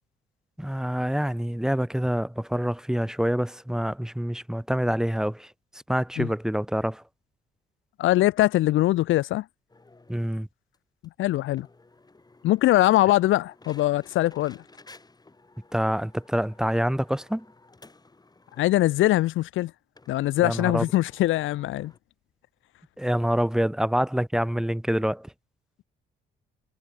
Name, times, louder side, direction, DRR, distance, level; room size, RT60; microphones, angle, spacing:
voice 1, 0.6-5.5 5.9-7.0 10.1-10.5 15.7-17.4 20.4-20.8 23.0-25.3, equal, 5° right, 1.6 m, -26 dB
voice 2, 8.0-9.5 11.2-11.7 12.4-14.6 18.6-19.7 20.1-21.9, left 15 dB, 80° left, 0.7 m, -22 dB
sound 1, 9.7-10.3 10.7-10.8 11.0-11.1 11.6-18.7 19.1-19.2 19.4-19.5 20.0-22.0, left 3 dB, 20° left, 7.2 m, -54 dB
cardioid pair, 90°, 20 cm